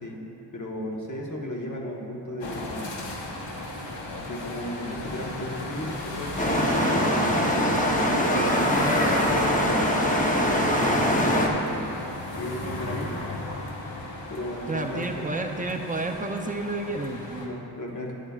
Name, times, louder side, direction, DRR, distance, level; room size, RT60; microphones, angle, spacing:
voice 1, 0.5-3.0 4.2-7.2 8.1-12.0 12.3-13.2 14.3-15.3 17.4-18.1, left 1 dB, 45° left, -1 dB, 1.2 m, -35 dB
sound 1, 2.4-17.5, left 2 dB, 80° left, 1.3 m, -35 dB
sound 2, 6.4-11.5, equal, 20° left, 0.9 m, -23 dB
voice 2, 8.7-9.0 14.7-17.6, right 2 dB, 20° right, 4 dB, 0.5 m, -31 dB
13.0 x 10.0 x 2.4 m, 3.0 s
wide cardioid pair, 150°, 44 cm